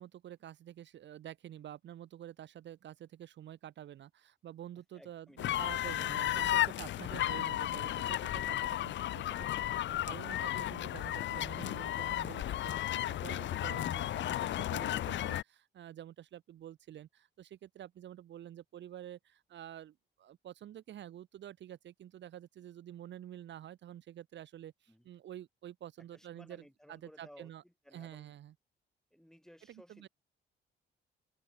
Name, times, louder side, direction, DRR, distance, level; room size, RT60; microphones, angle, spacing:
voice 1, 0.0-27.6 27.9-28.5 29.7-30.1, right 11 dB, 65° right, 1.1 m, -49 dB
voice 2, 4.9-5.4 24.9-25.1 26.1-28.3 29.1-30.1, equal, ahead, 5.6 m, -58 dB
sound 1, 5.4-15.4, left 13 dB, 70° left, 0.7 m, -34 dB
open air
cardioid pair, 90°, 20 cm